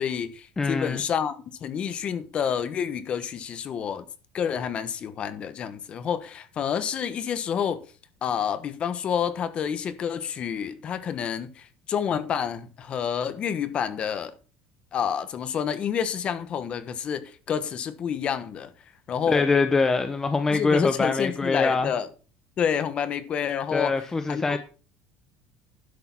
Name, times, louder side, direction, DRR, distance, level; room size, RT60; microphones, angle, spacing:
voice 1, 0.0-4.1 4.3-7.8 8.2-14.3 14.9-18.7 19.1-19.6 20.5-22.1 22.6-24.0 24.3-24.6, left 8 dB, 35° left, 1.2 m, -29 dB
voice 2, 0.6-1.0 19.3-21.9 23.7-24.6, left 4 dB, 15° left, 0.7 m, -24 dB
11.5 x 6.4 x 6.0 m
cardioid pair, 155°, 3 cm